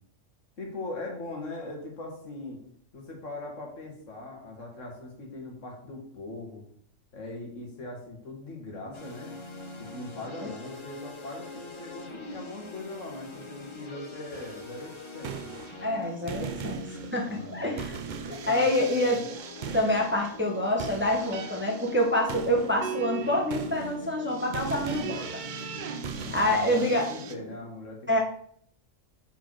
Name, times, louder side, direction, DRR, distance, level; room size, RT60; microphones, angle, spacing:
voice 1, 0.6-2.6 2.9-6.6 7.1-9.3 9.8-15.4 17.2-17.9 18.3-18.7 26.2-28.2, left 2 dB, 70° left, 0 dB, 2.0 m, -40 dB
sound 1, 8.9-27.6, left 2 dB, 30° left, 0.7 m, -43 dB
sound 2, 14.3-14.7 15.1-16.0 16.3-27.3, right 7 dB, 55° right, 0.5 m, -39 dB
voice 2, 15.8-18.0 18.5-19.2 19.7-25.2 26.3-27.0 28.1-28.2, left 1 dB, 10° right, 0 dB, 1.0 m, -26 dB
5.2 x 4.4 x 6.2 m, 0.62 s
omnidirectional pair, 1.3 m